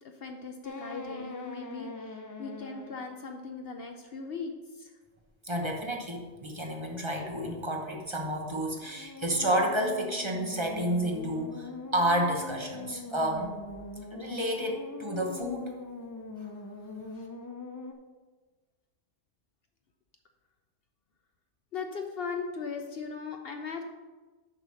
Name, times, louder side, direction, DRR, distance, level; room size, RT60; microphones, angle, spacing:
voice 1, 0.0-4.9 17.1-17.2 21.7-23.8, left 5 dB, 60° left, 4 dB, 0.8 m, -38 dB
sound 1, 0.6-3.1 8.8-17.9, left 3 dB, 25° left, 0.4 m, -42 dB
voice 2, 5.4-13.5 14.1-15.8, right 1 dB, 25° right, 2 dB, 1.0 m, -30 dB
6.8 x 5.9 x 6.2 m, 1.3 s
omnidirectional pair, 1.2 m